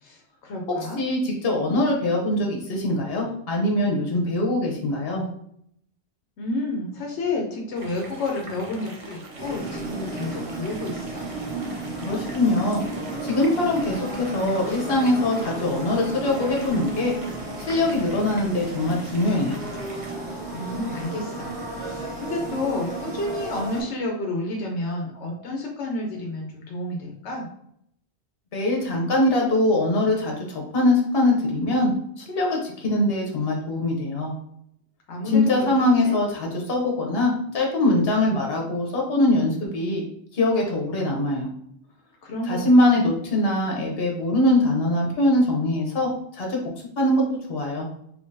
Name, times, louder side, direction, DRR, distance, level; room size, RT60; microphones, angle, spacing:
voice 1, 0.0-1.0 6.4-11.3 20.5-21.5 21.8-27.5 35.1-35.7 36.0-36.2 42.2-42.7, left 2 dB, 85° left, 0 dB, 1.0 m, -30 dB
voice 2, 1.0-5.2 12.0-12.8 13.2-17.1 17.6-19.6 28.5-34.3 35.3-40.0 40.3-41.5 42.5-46.6 47.0-47.2 47.5-47.9, left 1 dB, 65° left, -1 dB, 1.1 m, -22 dB
sound 1, 7.7-20.1, right 2 dB, 35° right, 0.6 m, -43 dB
sound 2, 9.4-23.8, right 2 dB, 80° right, 1.3 m, -33 dB
3.6 x 3.1 x 2.6 m, 0.71 s
omnidirectional pair, 1.1 m